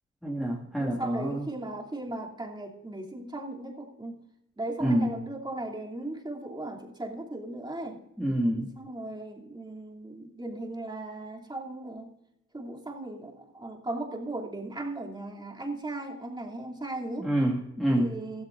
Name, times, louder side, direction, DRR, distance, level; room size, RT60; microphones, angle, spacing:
voice 1, 0.2-1.4 4.8-5.1 8.2-8.7 17.2-18.1, right 1 dB, ahead, -4 dB, 2.2 m, -27 dB
voice 2, 0.8-4.2 4.6-8.1 8.8-12.1 12.5-17.3 17.9-18.4, right 2 dB, 15° right, -1 dB, 2.9 m, -37 dB
15.0 x 14.0 x 2.6 m, 0.86 s
cardioid pair, 90°, 30 cm